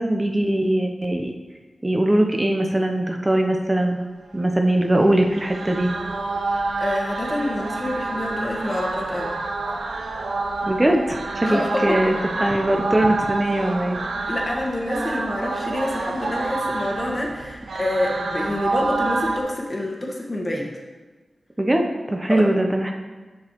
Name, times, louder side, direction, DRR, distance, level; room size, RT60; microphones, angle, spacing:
voice 1, 0.0-1.3 1.8-4.0 4.3-5.9 10.6-12.1 12.4-14.0 21.6-22.9, right 1 dB, 20° right, 3 dB, 0.6 m, -21 dB
sound 1, 5.1-19.4, right 3 dB, 85° right, 0.5 m, -28 dB
voice 2, 6.4-9.4 11.4-12.1 14.3-20.7 22.3-22.5, left 1 dB, 40° left, -1 dB, 1.2 m, -27 dB
7.4 x 6.1 x 2.9 m, 1.3 s
cardioid pair, 60°, 0 cm